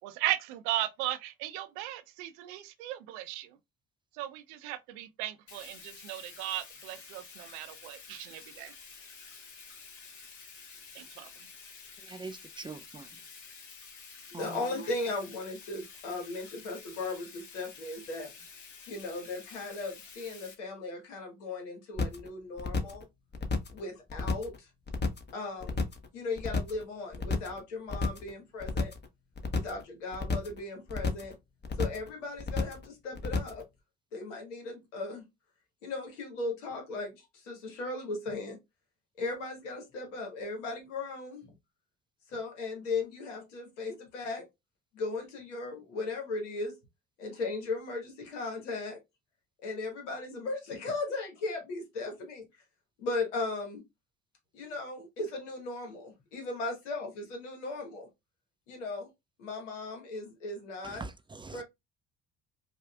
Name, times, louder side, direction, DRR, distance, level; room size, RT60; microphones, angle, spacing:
voice 1, 0.0-3.5 4.2-8.7 11.0-11.3, right 14 dB, 75° right, 0.6 m, -36 dB
Bathtub (filling or washing), 5.5-20.5, left 5 dB, 55° left, 1.4 m, -50 dB
voice 2, 12.0-13.1 14.3-14.7 60.8-61.6, right 3 dB, 15° right, 0.4 m, -43 dB
voice 3, 14.3-18.3 18.9-23.1 23.7-24.7 25.3-25.8 26.1-28.9 29.5-31.4 31.8-33.6 34.1-35.3 35.8-38.6 39.2-41.5 42.3-44.5 44.9-46.7 47.2-49.0 49.6-52.5 53.0-53.8 54.5-58.1 58.7-59.1 59.4-61.0 61.5-61.6, left 3 dB, 85° left, 1.2 m, -37 dB
sound 1, 22.0-22.3 22.6-23.0 23.3-23.8 24.1-24.6 24.9-25.3 25.6-26.1 26.4-26.8 27.1-27.6 27.9-28.3 28.6-29.1 29.4-29.8 30.1-30.6 30.9-31.3 31.6-32.1 32.4-32.9 33.2-33.6, left 3 dB, 30° left, 0.9 m, -31 dB
4.9 x 2.4 x 2.3 m
hypercardioid pair, 55°, 35 cm